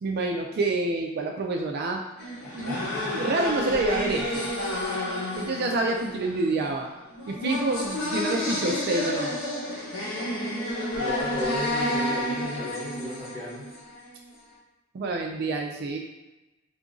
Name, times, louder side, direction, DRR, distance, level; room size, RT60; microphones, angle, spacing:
voice 1, 0.0-2.0 2.5-2.9 3.1-4.5 5.4-6.9 7.3-9.4 14.9-16.0, right 2 dB, 50° right, 2 dB, 0.4 m, -27 dB
sound 1, 2.2-14.1, left 1 dB, 85° left, 1.1 m, -30 dB
voice 2, 10.9-13.7, left 1 dB, 10° left, -8 dB, 1.2 m, -33 dB
3.8 x 2.5 x 3.6 m, 1.0 s
head